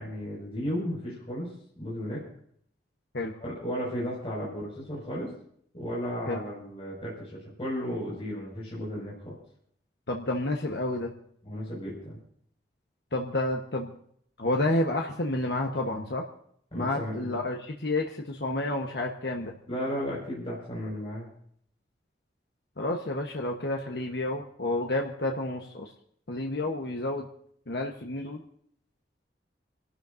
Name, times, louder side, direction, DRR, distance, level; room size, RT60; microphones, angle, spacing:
voice 1, 0.0-2.2 3.4-5.3 5.7-9.3 11.4-12.2 16.7-17.4 19.7-21.3, equal, 30° left, -6 dB, 5.5 m, -34 dB
voice 2, 10.1-11.1 13.1-13.9 14.4-16.3 16.7-19.5 22.8-25.9 26.3-27.3 27.7-28.4, left 2 dB, 70° left, 1 dB, 1.1 m, -30 dB
28.5 x 12.5 x 2.6 m, 0.64 s
head